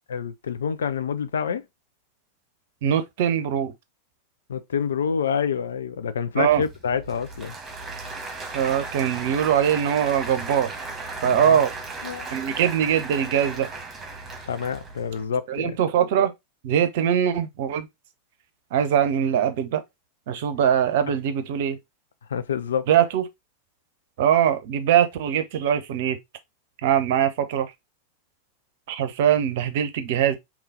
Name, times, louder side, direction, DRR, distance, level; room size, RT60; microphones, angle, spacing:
voice 1, 0.1-1.6 4.5-7.6 11.2-11.6 12.0-12.3 14.5-15.8 22.3-22.9, left 7 dB, 65° left, 0.4 m, -27 dB
voice 2, 2.8-3.7 6.4-6.6 8.5-10.7 11.2-11.7 12.3-13.7 15.5-16.3 16.6-17.9 18.7-19.8 20.3-21.8 22.9-23.2 24.2-26.2 26.8-27.7 28.9-30.4, right 9 dB, 55° right, 0.7 m, -22 dB
Applause / Crowd, 6.5-15.2, right 3 dB, 15° right, 1.4 m, -36 dB
3.9 x 3.0 x 3.9 m
figure-of-eight pair, 90°, 0 cm